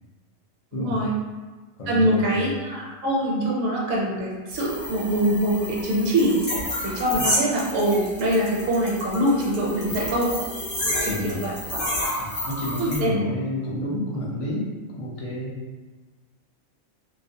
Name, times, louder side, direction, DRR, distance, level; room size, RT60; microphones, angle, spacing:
voice 1, 0.7-1.1 1.9-6.4 6.8-10.3 11.0-11.5 12.8-13.2, right 1 dB, 70° right, -4 dB, 0.9 m, -23 dB
voice 2, 1.8-2.4 11.1-11.4 12.2-15.5, left 1 dB, 60° left, -5 dB, 0.3 m, -30 dB
sound 1, 4.5-13.0, left 1 dB, 35° left, 0.7 m, -30 dB
2.4 x 2.0 x 2.6 m, 1.3 s
omnidirectional pair, 1.4 m